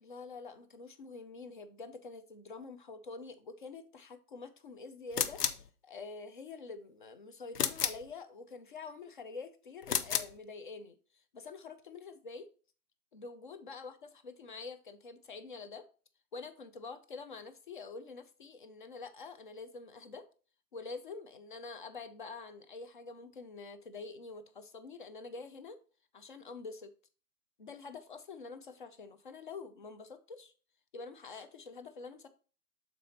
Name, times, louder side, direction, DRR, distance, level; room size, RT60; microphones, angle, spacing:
voice 1, 0.0-11.0 11.3-12.5 13.1-15.8 16.3-20.2 20.7-25.8 26.1-26.9 27.6-30.5 30.9-32.3, left 4 dB, 35° left, 0.5 m, -46 dB
sound 1, 5.1-5.7 7.6-8.1 9.8-10.4, left 8 dB, 80° left, 0.9 m, -32 dB
6.9 x 4.3 x 3.9 m
hypercardioid pair, 165°, 46 cm